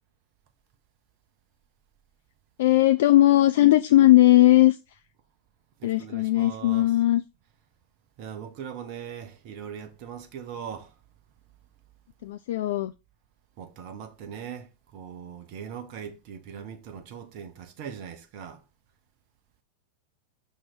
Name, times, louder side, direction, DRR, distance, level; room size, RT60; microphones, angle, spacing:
voice 1, 2.6-4.8 5.8-7.2 12.2-12.9, left 15 dB, 55° left, 0.3 m, -18 dB
voice 2, 5.8-6.9 8.2-10.9 13.6-18.6, right 8 dB, 45° right, 0.9 m, -40 dB
5.9 x 4.4 x 4.6 m
figure-of-eight pair, 90°, 0 cm